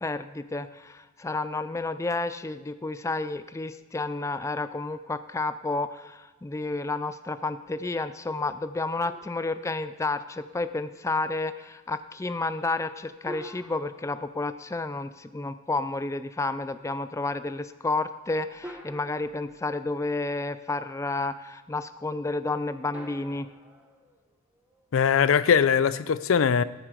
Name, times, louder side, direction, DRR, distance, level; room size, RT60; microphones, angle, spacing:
voice 1, 0.0-23.5, left 3 dB, 15° left, 0.4 m, -31 dB
sound 1, 9.0-10.5 13.3-15.3 17.0-17.1 18.6-20.5 22.9-25.0, equal, 10° right, 1.2 m, -48 dB
voice 2, 24.9-26.6, left 7 dB, 80° left, 0.5 m, -21 dB
14.0 x 7.4 x 4.9 m
head